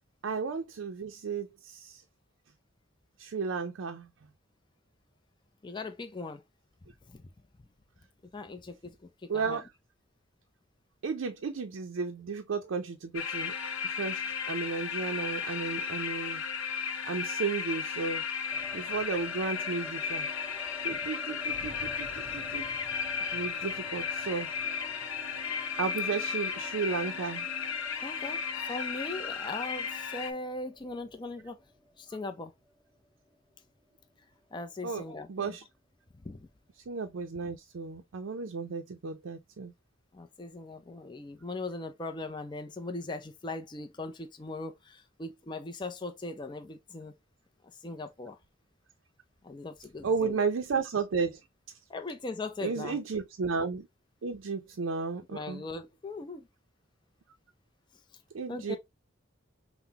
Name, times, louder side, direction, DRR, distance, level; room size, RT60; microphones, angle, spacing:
voice 1, 0.2-2.0 3.2-4.1 9.3-9.7 11.0-13.5 13.9-14.2 14.5-16.4 17.1-18.2 18.7-20.3 20.8-22.7 23.3-24.5 25.8-27.5 34.8-35.0 35.3-35.6 36.9-39.7 50.0-51.4 52.6-53.9 54.2-55.6 58.3-58.8, right 5 dB, 80° right, 0.5 m, -33 dB
voice 2, 5.6-6.4 7.1-7.3 8.3-9.6 21.6-21.7 28.0-28.4 28.7-31.6 32.0-32.5 34.5-35.6 36.2-36.5 40.1-47.1 47.8-48.4 49.4-50.4 51.9-53.0 55.3-56.5 58.5-58.8, left 2 dB, 25° left, 0.4 m, -39 dB
sound 1, 13.1-30.3, left 6 dB, 70° left, 0.6 m, -35 dB
sound 2, 18.5-34.6 34.9-35.0 35.2-36.0, left 1 dB, 5° right, 1.1 m, -50 dB
5.7 x 2.1 x 2.8 m
head